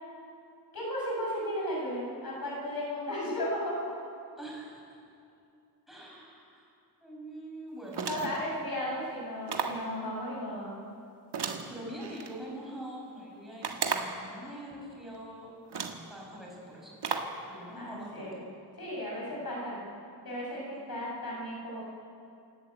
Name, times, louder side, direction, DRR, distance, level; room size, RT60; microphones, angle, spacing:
voice 1, 0.7-3.8 8.0-10.8 17.7-18.5 18.8-19.9 20.2-21.9, equal, 55° left, -3 dB, 6.8 m, -35 dB
voice 2, 4.4-5.0 5.9-6.7 7.0-8.1 11.6-15.5 16.1-17.2 17.5-18.5 19.1-19.5 20.7-21.0, right 1 dB, ahead, -4 dB, 6.4 m, -44 dB
sound 1, 7.9-8.5 9.5-9.9 11.3-12.3 13.6-14.3 15.1-15.2 15.7-16.1 17.0-17.4, right 5 dB, 70° right, 1.7 m, -34 dB
28.5 x 11.5 x 8.9 m, 2.6 s
wide cardioid pair, 170°, 43 cm